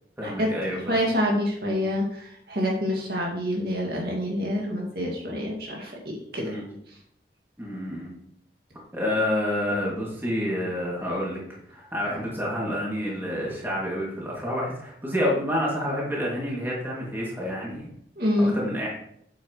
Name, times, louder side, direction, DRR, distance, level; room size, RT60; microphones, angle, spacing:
voice 1, 0.2-1.0 6.4-6.6 7.6-8.1 8.9-11.4 11.7-17.9 18.4-18.9, left 1 dB, 10° right, -5 dB, 2.5 m, -28 dB
voice 2, 0.9-5.9 6.3-6.6 6.9-7.0 18.2-18.5, equal, 60° right, -2 dB, 2.2 m, -26 dB
8.9 x 8.1 x 3.2 m, 0.72 s
head